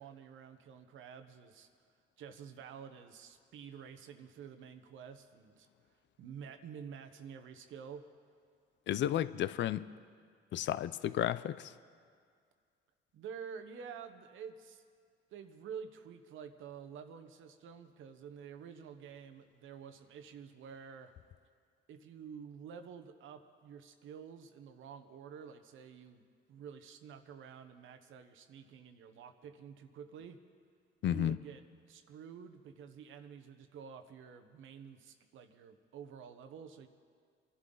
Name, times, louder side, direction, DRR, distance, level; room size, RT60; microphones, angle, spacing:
voice 1, 0.0-1.7 2.2-5.7 6.2-8.0 13.1-14.8 15.3-21.1 21.9-30.4 31.0-31.6 31.9-36.9, right 7 dB, 80° right, 8 dB, 1.1 m, -49 dB
voice 2, 8.9-9.9 10.5-11.7 31.0-31.4, left 11 dB, 65° left, 16 dB, 0.5 m, -32 dB
25.0 x 11.5 x 3.9 m, 2.1 s
cardioid pair, 90°, 20 cm